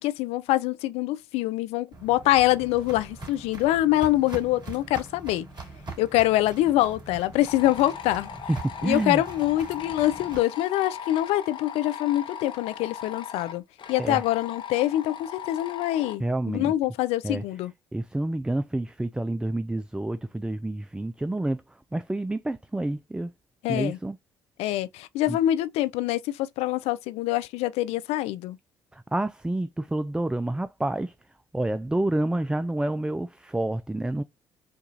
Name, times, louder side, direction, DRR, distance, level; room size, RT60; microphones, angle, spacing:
voice 1, 0.0-5.5 6.0-8.3 8.8-13.6 13.9-17.7 23.6-24.0 24.6-28.6, left 15 dB, 70° left, 0.4 m, -25 dB
Walk footsteps, 1.9-10.4, right 3 dB, 40° right, 2.7 m, -42 dB
sound 1, 7.5-16.2, left 8 dB, 50° left, 0.8 m, -39 dB
voice 2, 8.8-9.2 14.0-14.2 16.2-16.7 17.2-17.4 17.9-21.6 21.9-23.3 23.7-24.2 25.3-25.4 28.9-31.1 31.5-34.2, right 1 dB, 10° right, 0.3 m, -28 dB
4.5 x 2.3 x 2.6 m
hypercardioid pair, 55°, 11 cm